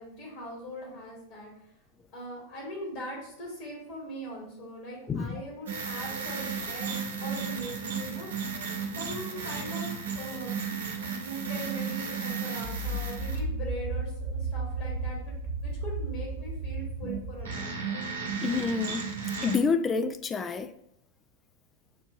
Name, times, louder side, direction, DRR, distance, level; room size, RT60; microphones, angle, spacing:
voice 1, 0.0-1.5 2.1-8.3 8.9-10.6 11.1-15.3 15.6-18.2, equal, 45° left, -3 dB, 1.8 m, -41 dB
voice 2, 5.1-5.4 18.4-19.1 19.4-20.7, left 4 dB, 20° left, 10 dB, 0.3 m, -28 dB
sound 1, 5.7-19.6, right 4 dB, 65° right, 0.8 m, -34 dB
7.0 x 2.6 x 2.6 m, 0.76 s
figure-of-eight pair, 90°, 0 cm